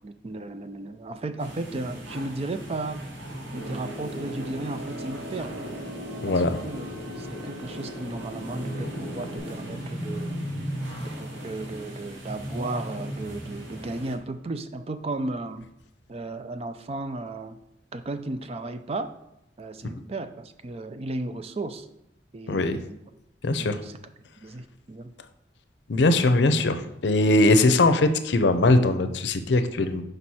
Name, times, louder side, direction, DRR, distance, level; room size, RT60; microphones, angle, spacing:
voice 1, 0.0-3.1 3.5-5.7 6.2-6.9 7.2-10.5 11.0-15.7 16.1-17.6 17.9-19.1 19.6-21.9 22.3-23.0 23.6-24.0 24.4-25.1, right 2 dB, 35° right, 10 dB, 0.4 m, -35 dB
sound 1, 1.4-14.2, equal, 80° right, 1.7 m, -37 dB
sound 2, 3.6-9.4, equal, 65° right, 2.1 m, -39 dB
voice 2, 22.5-22.8 23.4-23.8 25.9-30.0, left 2 dB, 70° left, 9 dB, 0.6 m, -21 dB
6.2 x 5.1 x 4.2 m, 0.87 s
head